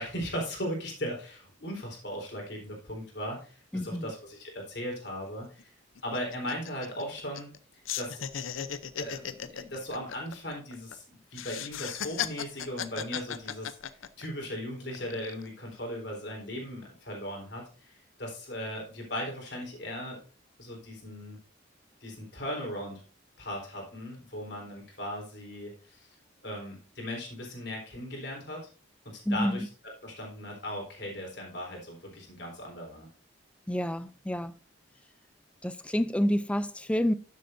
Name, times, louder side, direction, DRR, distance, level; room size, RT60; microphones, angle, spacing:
voice 1, 0.0-3.6 3.8-5.7 6.0-7.5 8.0-8.3 8.9-11.0 11.3-13.8 14.2-20.2 20.6-21.4 22.0-23.0 23.4-26.1 26.4-28.7 29.1-29.7 30.0-33.1, equal, 55° left, 3.9 m, -38 dB
voice 2, 3.7-4.1 29.3-29.7 33.7-34.5 35.6-37.1, equal, 5° left, 0.3 m, -28 dB
sound 1, 5.1-5.2 5.4-5.6 6.0-7.6 7.8-10.9 11.3-14.4 14.9-15.5, left 8 dB, 90° left, 0.6 m, -36 dB
12.0 x 7.5 x 2.6 m
head